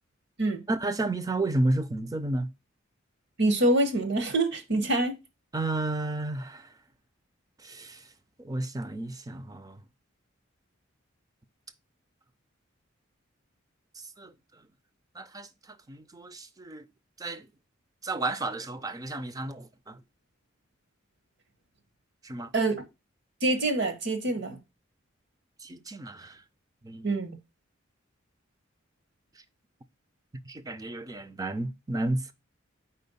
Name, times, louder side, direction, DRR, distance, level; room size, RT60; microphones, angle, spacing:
voice 1, 0.7-2.5 5.5-6.7 7.6-8.0 8.4-9.8 14.2-14.3 15.2-15.5 15.9-16.8 17.2-17.5 18.0-20.0 22.2-22.5 25.6-26.4 26.8-27.1 30.4-32.3, right 2 dB, 20° right, 0.4 m, -32 dB
voice 2, 3.4-5.2 22.5-22.8 23.4-24.6 27.0-27.3, right 2 dB, 60° right, 1.1 m, -25 dB
4.4 x 4.3 x 5.4 m
head